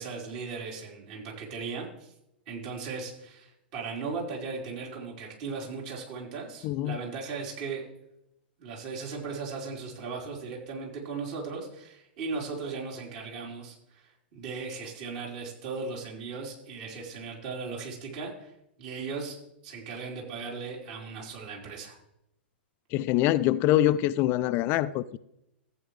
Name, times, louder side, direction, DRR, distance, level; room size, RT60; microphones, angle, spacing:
voice 1, 0.0-2.1 2.5-7.9 8.6-18.5 18.8-19.4 19.6-22.0, right 4 dB, 50° right, 4.5 m, -37 dB
voice 2, 6.6-7.0 22.9-25.2, left 14 dB, 35° left, 0.4 m, -24 dB
14.5 x 9.1 x 3.3 m
figure-of-eight pair, 105°, 6 cm